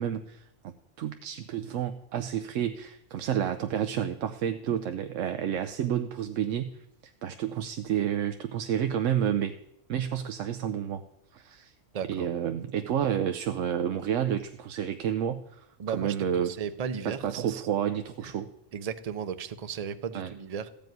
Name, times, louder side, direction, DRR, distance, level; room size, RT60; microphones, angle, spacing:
voice 1, 0.0-6.8 7.0-9.6 9.9-11.0 11.3-11.7 12.1-15.7 15.9-16.5 17.0-18.5 20.1-20.3, right 9 dB, 90° right, 8 dB, 1.0 m, -30 dB
voice 2, 11.9-12.3 15.8-17.7 18.2-18.3 18.7-20.7, right 7 dB, 40° right, 12 dB, 0.6 m, -35 dB
14.5 x 5.2 x 9.2 m, 0.81 s
omnidirectional pair, 1.3 m